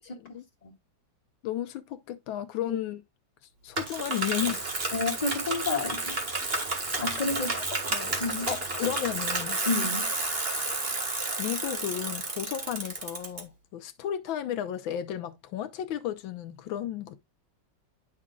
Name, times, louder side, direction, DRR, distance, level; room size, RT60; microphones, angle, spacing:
voice 1, 1.4-3.0 3.6-4.7 6.9-7.2 7.7-9.6 11.4-17.2, left 11 dB, 85° left, 1.5 m, -34 dB
Bicycle, 3.8-13.4, right 3 dB, 30° right, 1.7 m, -31 dB
voice 2, 4.9-6.2 7.0-7.5 8.2-8.5 8.8-8.9 9.7-10.1, left 3 dB, 20° left, 2.0 m, -30 dB
9.9 x 6.1 x 2.3 m
omnidirectional pair, 2.1 m